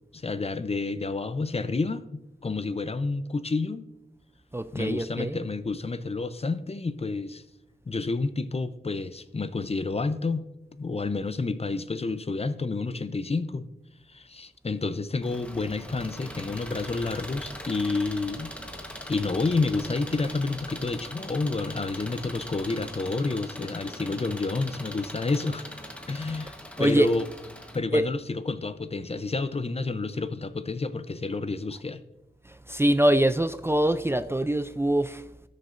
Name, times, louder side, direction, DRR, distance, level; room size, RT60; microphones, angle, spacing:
voice 1, 0.1-3.9 4.7-7.4 7.9-10.5 10.8-13.6 14.1-18.5 19.1-25.6 26.1-27.3 27.7-32.0, left 3 dB, 40° left, 12 dB, 0.5 m, -29 dB
voice 2, 4.5-5.4 26.2-26.4 26.8-27.1 27.9-28.1 32.7-35.2, right 1 dB, 15° right, 11 dB, 0.3 m, -24 dB
Engine, 15.2-27.8, equal, 5° left, 1.1 m, -41 dB
17.0 x 6.5 x 2.5 m, 0.93 s
wide cardioid pair, 80°, 17 cm